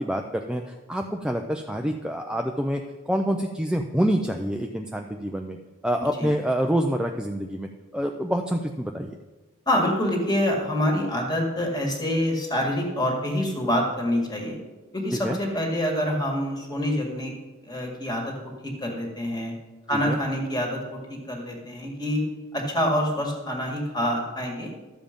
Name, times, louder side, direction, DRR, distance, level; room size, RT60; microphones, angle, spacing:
voice 1, 0.0-5.6 5.8-7.7 7.9-9.1 15.1-15.4 19.9-20.2, equal, 5° right, 3 dB, 0.4 m, -27 dB
voice 2, 9.7-14.6 14.9-17.3 17.7-18.3 18.6-19.5 19.9-22.2 22.5-24.7, left 1 dB, 20° left, 1 dB, 2.0 m, -26 dB
13.0 x 7.3 x 5.2 m, 1.2 s
head